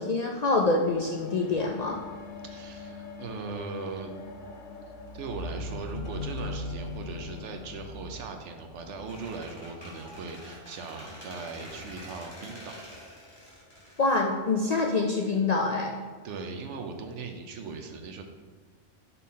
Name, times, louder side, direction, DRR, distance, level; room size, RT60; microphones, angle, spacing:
voice 1, 0.0-2.0 14.0-15.9, left 3 dB, 60° left, 0 dB, 0.4 m, -26 dB
sound 1, 0.7-10.2 11.0-11.1, left 2 dB, 85° left, 1.1 m, -41 dB
voice 2, 2.4-4.1 5.1-12.7 16.2-18.2, right 4 dB, 75° right, 5 dB, 1.0 m, -39 dB
Squeak, 9.1-14.9, left 1 dB, 20° left, 1.9 m, -47 dB
5.5 x 4.2 x 4.2 m, 1.4 s
omnidirectional pair, 1.2 m